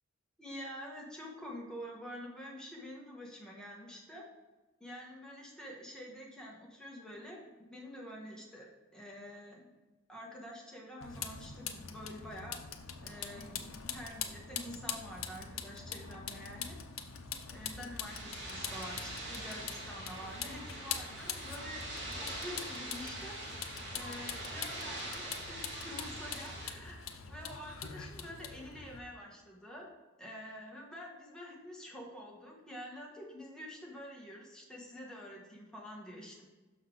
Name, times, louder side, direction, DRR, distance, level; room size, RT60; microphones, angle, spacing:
voice 1, 0.4-4.2 4.8-9.7 10.1-12.6 13.0-16.8 17.5-23.4 23.9-29.9 30.2-36.4, equal, 5° left, -3 dB, 1.4 m, -47 dB
Vehicle, 11.0-29.0, left 7 dB, 85° left, 0.6 m, -44 dB
sound 1, 18.0-26.7, right 1 dB, 60° right, 2.4 m, -43 dB
6.3 x 5.7 x 3.9 m, 1.2 s
head